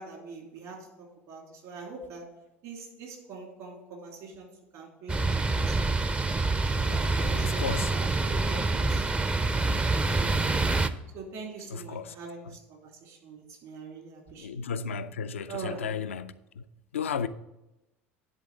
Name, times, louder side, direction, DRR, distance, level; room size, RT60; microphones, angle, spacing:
voice 1, 0.0-2.2 2.6-4.5 4.7-6.4 6.8-7.6 7.9-9.0 9.5-10.5 11.1-14.5 15.5-15.9, right 4 dB, 60° right, 3.0 m, -43 dB
sound 1, 5.1-10.9, right 3 dB, 15° right, 0.5 m, -26 dB
voice 2, 7.4-8.0 11.7-12.1 14.4-16.6 16.9-17.3, left 6 dB, 85° left, 0.4 m, -34 dB
10.5 x 3.6 x 7.1 m
hypercardioid pair, 75°, 7 cm